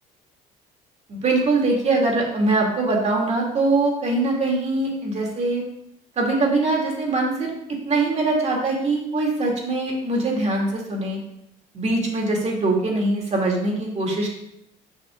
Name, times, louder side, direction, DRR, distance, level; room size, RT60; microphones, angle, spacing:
voice 1, 1.1-5.6 6.2-7.5 7.8-11.2 11.7-14.3, right 2 dB, 40° right, 0 dB, 2.5 m, -22 dB
7.8 x 6.2 x 3.8 m, 0.77 s
cardioid pair, 110°, 17 cm